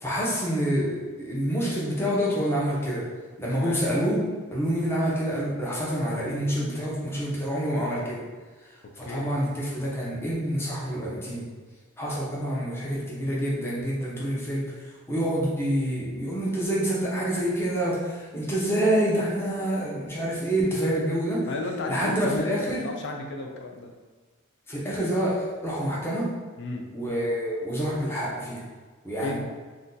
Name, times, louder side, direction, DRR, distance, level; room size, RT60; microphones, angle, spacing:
voice 1, 0.0-3.0 3.4-4.2 4.5-8.2 8.7-11.5 12.0-21.4 21.9-22.9 24.7-26.3 26.9-28.6 29.0-29.4, equal, 10° left, -6 dB, 0.6 m, -27 dB
voice 2, 3.5-3.8 9.0-9.3 21.5-23.9 26.6-26.8 29.2-29.4, left 2 dB, 55° left, 2 dB, 0.3 m, -34 dB
2.6 x 2.2 x 3.7 m, 1.4 s
head